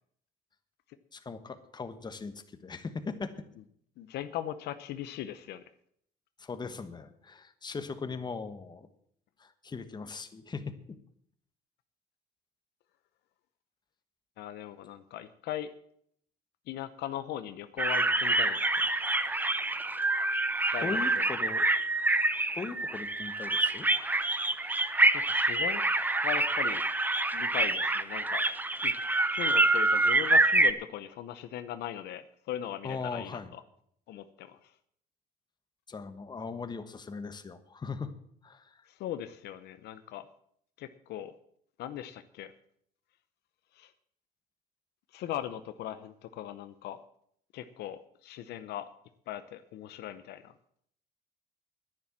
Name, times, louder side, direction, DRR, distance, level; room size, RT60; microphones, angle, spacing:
voice 1, 1.1-3.3 6.4-8.9 9.4-11.0 20.8-21.7 22.5-23.9 32.8-33.5 35.9-38.1 38.4-38.9, left 4 dB, 25° left, 10 dB, 1.3 m, -39 dB
voice 2, 4.0-5.6 14.4-15.7 16.7-18.9 20.7-21.0 25.1-25.9 26.2-26.8 27.3-28.4 28.8-28.9 29.3-33.6 34.1-34.7 38.9-40.3 40.8-41.3 41.8-42.5 43.8-43.9 45.1-47.0 47.5-48.9 49.3-50.5, left 11 dB, 75° left, 11 dB, 0.8 m, -39 dB
sound 1, 17.8-30.7, right 2 dB, 10° right, 0.8 m, -27 dB
10.5 x 10.5 x 7.3 m, 0.67 s
cardioid pair, 110°, 17 cm